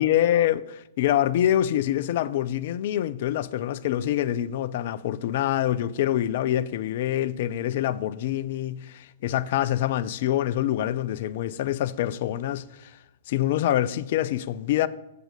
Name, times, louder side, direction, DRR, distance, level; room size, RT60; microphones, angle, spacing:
voice 1, 0.0-12.9 13.3-14.9, left 12 dB, 55° left, 0.4 m, -25 dB
7.4 x 6.8 x 6.6 m
figure-of-eight pair, 110°, 0 cm